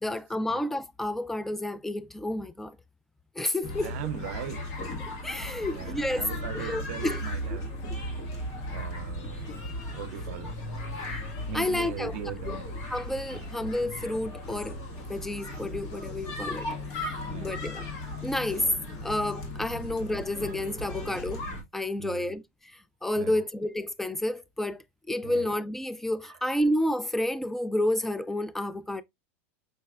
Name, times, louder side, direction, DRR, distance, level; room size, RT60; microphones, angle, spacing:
voice 1, 0.0-2.8 3.4-3.9 5.2-6.3 6.5-7.2 11.5-12.1 12.5-12.6 12.9-14.8 15.1-16.7 16.9-17.8 18.2-18.7 19.0-21.4 21.7-22.4 22.7-29.0, left 1 dB, 5° left, 0.3 m, -30 dB
sound 1, 3.6-21.6, left 1 dB, 50° left, 1.7 m, -36 dB
voice 2, 3.8-4.6 5.7-7.7 8.7-9.5 9.9-10.5 11.5-12.7 13.3-13.4 17.3-17.7 19.7-19.8 20.8-21.1 22.0-22.3 23.2-23.4 25.2-25.5, right 12 dB, 70° right, 0.5 m, -40 dB
5.4 x 3.2 x 2.3 m
supercardioid pair, 125°, 7 cm